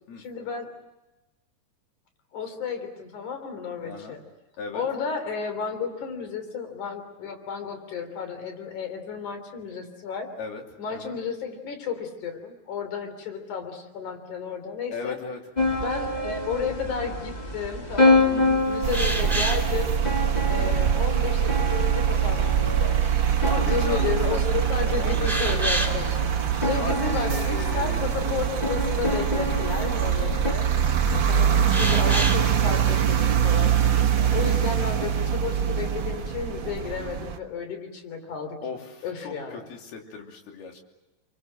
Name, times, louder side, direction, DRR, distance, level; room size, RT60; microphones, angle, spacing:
voice 1, 0.2-0.7 2.3-4.2 4.7-10.3 10.8-15.2 15.8-20.0 20.5-23.0 23.6-26.1 26.6-30.7 31.3-33.8 34.3-38.6 39.0-39.6, left 6 dB, 55° left, 7 dB, 4.6 m, -32 dB
voice 2, 3.8-4.2 4.6-4.8 10.4-10.6 10.9-11.2 14.9-15.8 18.3-18.6 20.5-20.7 23.4-26.0 26.7-28.4 30.0-31.6 34.1-34.5 38.6-40.8, left 4 dB, 85° left, 2 dB, 4.8 m, -38 dB
sound 1, 15.5-30.5, left 2 dB, 25° left, 0.9 m, -28 dB
sound 2, 18.8-37.4, right 9 dB, 70° right, 1.1 m, -24 dB
sound 3, 18.9-19.7 20.4-20.5 21.0-21.5 22.0-22.5 23.1-23.2 23.6-24.1 24.3-26.2 26.5-26.7 27.1-27.2 31.7-32.5 33.5-34.1, right 1 dB, ahead, 4.1 m, -30 dB
30.0 x 23.5 x 7.6 m, 1.1 s
omnidirectional pair, 4.3 m